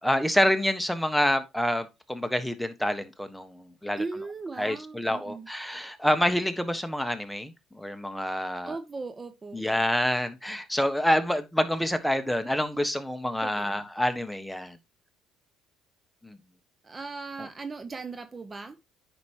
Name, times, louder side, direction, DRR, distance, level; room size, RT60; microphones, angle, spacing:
voice 1, 0.0-4.0 4.6-8.7 9.5-14.8 16.2-16.4, left 1 dB, 5° left, 1.3 m, -27 dB
voice 2, 4.0-5.5 8.6-9.6 13.4-13.8 16.8-18.8, right 3 dB, 30° right, 0.8 m, -38 dB
9.5 x 6.1 x 3.0 m
supercardioid pair, 75°, 0 cm